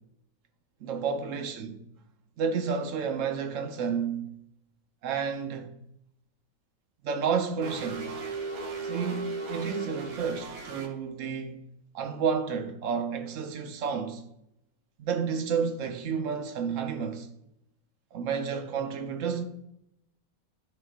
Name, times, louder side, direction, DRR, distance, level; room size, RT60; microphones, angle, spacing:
voice 1, 0.8-1.7 2.4-4.3 5.0-5.8 7.0-8.2 8.8-11.6 11.9-14.2 15.0-17.3 18.1-19.4, right 6 dB, 55° right, 1.0 m, -31 dB
sound 1, 7.6-10.9, right 3 dB, 75° right, 1.6 m, -36 dB
12.5 x 4.5 x 2.5 m
omnidirectional pair, 1.8 m